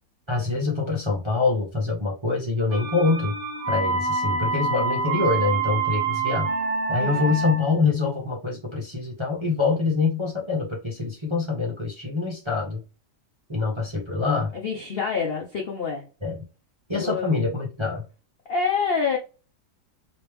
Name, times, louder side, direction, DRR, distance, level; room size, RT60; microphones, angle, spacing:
voice 1, 0.3-3.4 3.7-6.5 6.9-12.8 13.5-14.5 16.2-16.4 16.9-18.0, left 4 dB, 25° right, 0.7 m, -25 dB
sound 1, 2.7-7.8, right 4 dB, 65° right, 0.5 m, -26 dB
voice 2, 7.0-7.3 14.5-16.1 17.0-17.3 18.5-19.2, left 5 dB, 55° left, 0.6 m, -27 dB
3.1 x 3.0 x 3.3 m
omnidirectional pair, 1.8 m